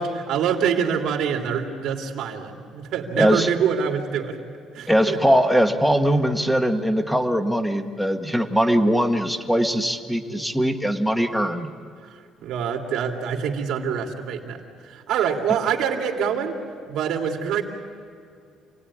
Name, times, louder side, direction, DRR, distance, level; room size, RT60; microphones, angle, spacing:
voice 1, 0.0-4.4 4.7-5.2 12.0-16.6 16.9-17.6, right 7 dB, 65° right, 2 dB, 2.9 m, -25 dB
voice 2, 3.2-3.5 4.9-11.7, equal, ahead, 6 dB, 1.2 m, -21 dB
28.5 x 18.0 x 9.9 m, 2.4 s
cardioid pair, 165°, 0 cm